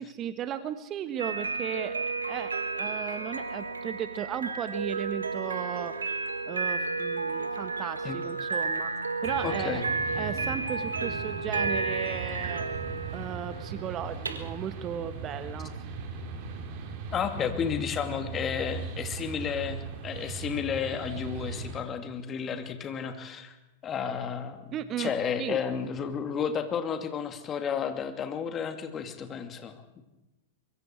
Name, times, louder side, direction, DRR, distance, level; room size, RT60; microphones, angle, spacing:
voice 1, 0.0-5.9 6.5-8.9 9.2-9.8 10.1-12.7 13.1-15.7 24.7-25.1 25.4-25.6, right 9 dB, 35° right, 11 dB, 1.4 m, -35 dB
sound 1, 1.2-20.2, right 4 dB, 85° right, 1.8 m, -33 dB
sound 2, 9.2-21.8, right 4 dB, 50° right, 3.5 m, -39 dB
voice 2, 9.4-9.9 17.1-23.6 23.8-24.6 25.0-30.0, left 7 dB, 30° left, 7 dB, 2.6 m, -32 dB
24.0 x 23.0 x 4.7 m, 1.0 s
figure-of-eight pair, 100°, 0 cm